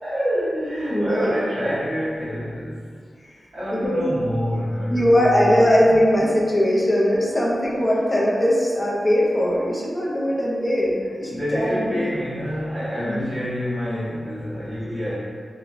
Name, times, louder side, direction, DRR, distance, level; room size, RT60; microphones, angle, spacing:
voice 1, 0.0-2.9 3.5-6.0 10.8-10.9 11.3-15.1, equal, 60° right, -16 dB, 0.9 m, -27 dB
voice 2, 0.9-1.4 3.2-3.4 3.7-4.1 4.9-12.1 13.0-13.2 14.8-15.0, equal, 25° left, -5 dB, 0.5 m, -20 dB
3.0 x 2.2 x 2.5 m, 2.1 s
wide cardioid pair, 105°, 0 cm